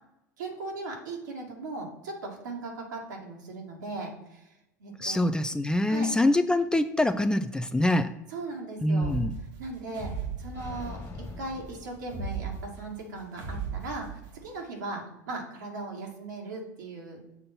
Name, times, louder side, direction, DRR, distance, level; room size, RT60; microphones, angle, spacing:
voice 1, 0.4-4.5 4.8-5.3 5.9-6.1 8.3-9.1 9.6-10.1 10.4-11.0 11.4-17.2, right 3 dB, 75° right, -1 dB, 2.1 m, -38 dB
voice 2, 5.0-8.1 8.8-9.4, left 1 dB, 10° left, 9 dB, 0.5 m, -25 dB
sound 1, 9.0-11.2 12.0-14.5, right 6 dB, 55° right, 1.4 m, -37 dB
sound 2, 10.5-12.7, left 2 dB, 30° left, 1.8 m, -43 dB
7.1 x 3.8 x 5.9 m, 0.93 s
hypercardioid pair, 75°, 10 cm